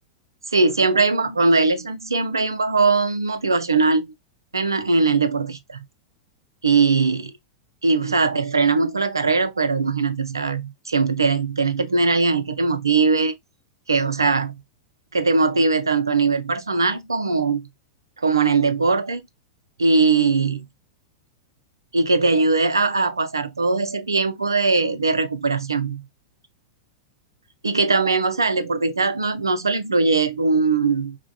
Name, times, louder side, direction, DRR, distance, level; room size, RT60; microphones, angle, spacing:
voice 1, 0.5-4.1 4.5-5.8 6.6-7.3 7.8-13.4 13.9-14.5 15.1-17.7 18.2-19.2 19.8-20.6 21.9-26.0 27.6-31.2, right 4 dB, 80° right, 0.5 m, -20 dB
4.7 x 2.2 x 2.3 m
figure-of-eight pair, 95°, 2 cm